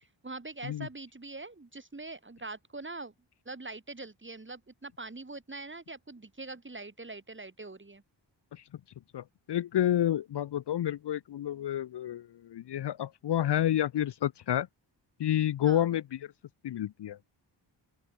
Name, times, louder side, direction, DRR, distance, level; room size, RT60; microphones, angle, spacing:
voice 1, 0.0-3.1 3.5-8.0 15.6-15.9, right 3 dB, 25° right, 3.6 m, -43 dB
voice 2, 9.1-14.7 15.2-16.3 16.6-17.2, left 11 dB, 65° left, 0.6 m, -29 dB
open air
wide cardioid pair, 105°, 45 cm